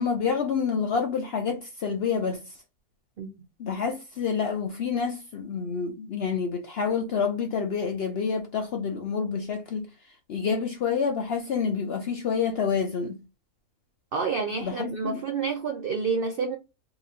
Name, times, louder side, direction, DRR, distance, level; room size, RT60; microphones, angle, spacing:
voice 1, 0.0-2.6 3.6-9.9 10.3-13.2 14.6-15.2, left 6 dB, 65° left, 0.6 m, -28 dB
voice 2, 14.1-16.6, right 5 dB, 70° right, 0.5 m, -28 dB
2.9 x 2.5 x 4.1 m
omnidirectional pair, 1.6 m